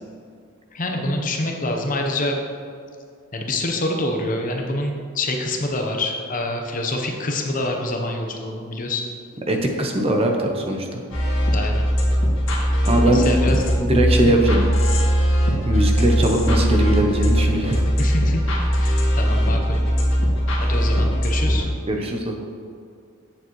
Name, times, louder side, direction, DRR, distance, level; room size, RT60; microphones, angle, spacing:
voice 1, 0.7-2.4 3.3-9.0 11.5-11.9 13.0-13.6 18.0-18.4 18.7-19.8 20.6-21.6, left 1 dB, 40° left, 2 dB, 0.8 m, -26 dB
voice 2, 9.5-11.0 12.9-13.3 13.8-14.7 15.6-17.8 21.9-22.3, right 1 dB, 25° right, 2 dB, 0.6 m, -20 dB
sound 1, 11.1-21.7, equal, 65° left, 1.7 m, -20 dB
8.8 x 7.1 x 3.0 m, 2.2 s
head